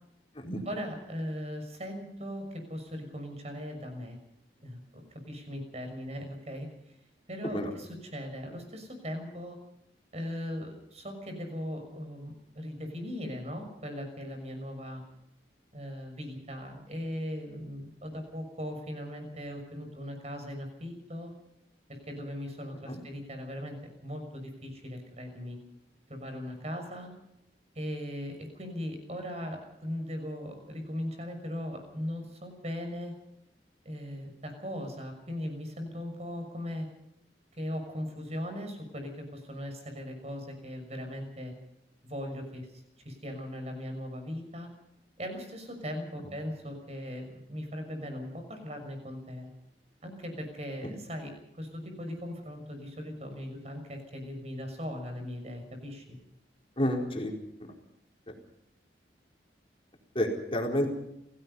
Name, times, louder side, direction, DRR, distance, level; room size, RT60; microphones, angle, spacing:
voice 1, 0.6-4.2 4.6-7.0 7.3-9.6 10.1-15.0 15.7-21.3 21.9-25.6 26.1-27.1 27.7-33.1 33.8-36.9 37.6-41.5 42.0-44.7 45.2-49.5 50.0-56.0, equal, 35° right, 6 dB, 6.2 m, -39 dB
voice 2, 56.8-57.3 57.6-57.7 60.1-60.9, equal, 30° left, 1 dB, 4.4 m, -30 dB
29.0 x 17.5 x 5.6 m, 0.82 s
head